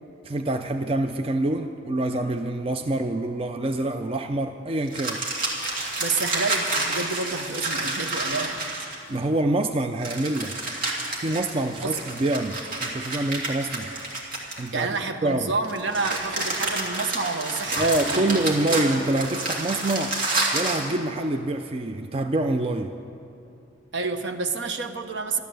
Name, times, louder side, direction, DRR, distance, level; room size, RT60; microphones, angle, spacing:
voice 1, 0.2-5.3 9.1-10.6 11.2-13.9 14.6-15.5 17.8-20.2 20.5-22.9, right 2 dB, 30° right, 6 dB, 0.4 m, -26 dB
sound 1, 4.9-9.2 10.0-14.9 15.6-20.9, right 2 dB, 50° right, 2.5 m, -29 dB
voice 2, 6.0-8.6 11.8-12.0 14.7-18.3 23.9-25.4, right 4 dB, 70° right, 6 dB, 1.0 m, -29 dB
13.0 x 12.0 x 7.8 m, 2.7 s
head